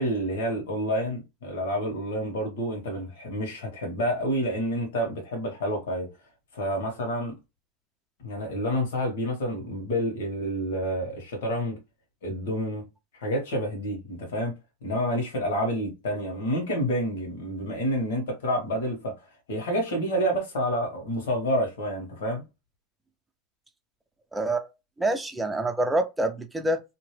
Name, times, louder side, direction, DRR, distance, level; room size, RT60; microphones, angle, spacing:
voice 1, 0.0-6.1 6.5-7.3 8.2-11.8 12.2-12.8 13.1-14.5 14.8-22.4, equal, 80° left, 1.6 m, -29 dB
voice 2, 24.3-24.7 25.0-26.8, right 1 dB, 5° right, 0.6 m, -26 dB
2.8 x 2.5 x 3.3 m
supercardioid pair, 115°, 0 cm